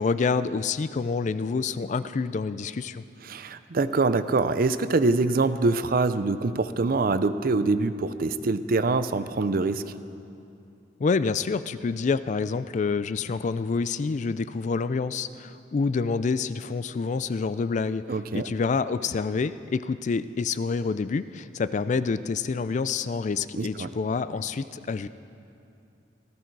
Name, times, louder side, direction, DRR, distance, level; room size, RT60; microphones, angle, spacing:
voice 1, 0.0-3.0 11.0-18.0 18.3-25.1, left 4 dB, 40° left, 14 dB, 0.3 m, -27 dB
voice 2, 3.3-9.8 18.1-18.5 23.6-23.9, right 3 dB, 50° right, 12 dB, 0.5 m, -24 dB
18.0 x 13.5 x 4.7 m, 2.6 s
head